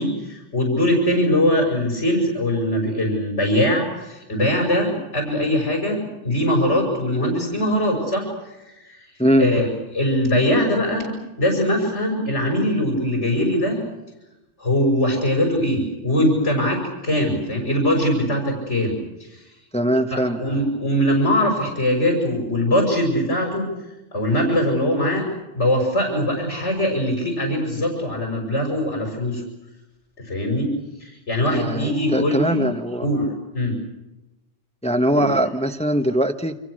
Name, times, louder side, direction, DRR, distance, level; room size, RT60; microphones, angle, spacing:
voice 1, 0.0-9.1 9.4-9.7 9.9-13.8 14.6-19.4 20.1-23.7 24.1-29.4 30.2-32.7 33.0-33.8 35.1-35.4, left 1 dB, 85° left, 2 dB, 6.3 m, -22 dB
voice 2, 19.7-20.4 31.5-33.0 34.8-36.6, equal, 5° left, 7 dB, 1.2 m, -21 dB
29.0 x 26.0 x 6.5 m, 0.97 s
omnidirectional pair, 1.2 m